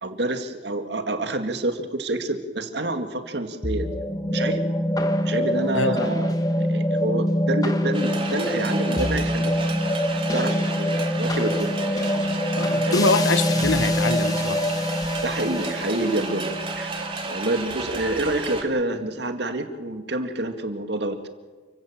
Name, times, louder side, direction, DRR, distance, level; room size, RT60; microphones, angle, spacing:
voice 1, 0.0-4.6 5.2-9.5 10.3-12.1 12.8-13.1 15.2-16.9 17.3-21.2, right 2 dB, 60° right, 7 dB, 2.2 m, -28 dB
sound 1, 3.6-18.1, equal, 20° left, 1.5 m, -25 dB
sound 2, 7.9-18.6, right 3 dB, 30° right, 2.9 m, -32 dB
voice 2, 12.5-14.6, left 3 dB, 90° left, 12 dB, 1.4 m, -24 dB
29.0 x 16.0 x 7.4 m, 1.4 s
head